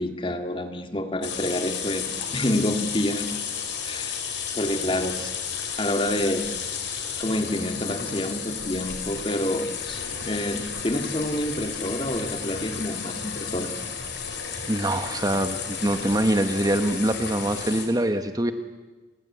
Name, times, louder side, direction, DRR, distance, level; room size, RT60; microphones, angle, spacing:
voice 1, 0.0-3.3 3.9-4.2 4.5-5.3 5.8-6.4 7.2-13.7, left 1 dB, 30° left, 6 dB, 2.0 m, -28 dB
sound 1, 1.2-17.9, left 6 dB, 90° left, 4.7 m, -32 dB
voice 2, 14.7-18.5, right 1 dB, 20° right, 9 dB, 1.1 m, -24 dB
29.5 x 20.5 x 8.6 m, 1.2 s
head